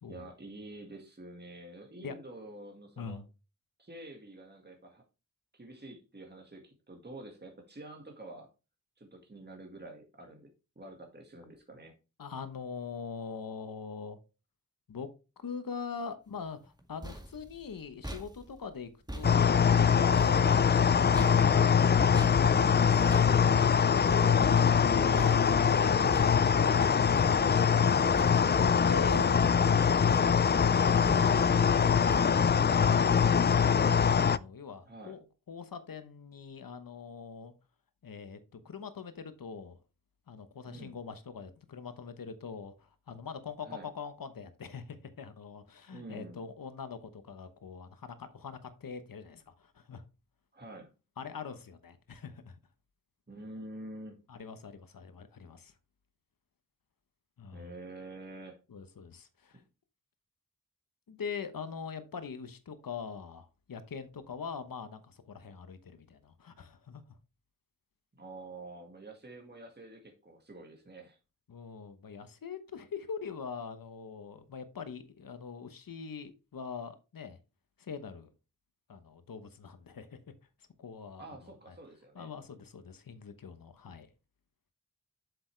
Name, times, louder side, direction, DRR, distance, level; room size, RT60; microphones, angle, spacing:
voice 1, 0.1-3.2 3.8-5.0 5.5-8.5 9.0-10.5 10.8-12.0 20.4-20.8 24.4-24.7 34.9-35.2 40.7-41.0 43.6-43.9 45.9-46.4 50.5-50.9 53.3-54.2 57.5-58.6 59.5-59.6 68.2-71.2 81.2-82.3, right 2 dB, 30° right, 1.9 m, -47 dB
voice 2, 3.0-3.3 12.2-14.2 14.9-15.1 15.4-26.8 28.9-29.3 29.6-37.5 38.0-39.8 40.3-50.0 51.2-52.6 54.3-55.7 57.4-57.7 58.7-59.6 61.1-67.0 71.5-77.4 77.8-78.3 78.9-80.2 80.8-81.8 82.1-84.1, left 5 dB, 90° left, 1.0 m, -43 dB
sound 1, 16.6-27.9 28.1-28.7 29.1-29.7 30.1-30.8 31.0-31.6 32.1-32.6 33.1-33.6, equal, 10° right, 2.0 m, -45 dB
sound 2, 19.2-34.4, left 7 dB, 30° left, 0.4 m, -23 dB
7.7 x 7.0 x 3.3 m
wide cardioid pair, 60°, 33 cm